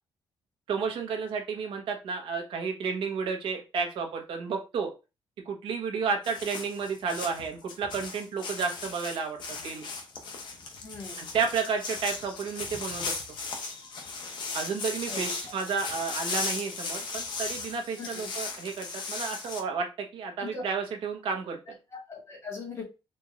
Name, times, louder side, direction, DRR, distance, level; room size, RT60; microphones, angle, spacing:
voice 1, 0.7-4.9 5.4-9.9 11.2-13.2 14.5-21.8, right 5 dB, 80° right, 3 dB, 1.1 m, -32 dB
sound 1, 6.2-19.6, left 4 dB, 60° left, 0.9 m, -37 dB
voice 2, 10.8-11.2 15.1-15.2 18.0-18.3 20.4-20.6 21.9-22.8, left 4 dB, 35° left, -3 dB, 2.1 m, -40 dB
4.4 x 2.5 x 3.1 m, 0.28 s
cardioid pair, 155°, 9 cm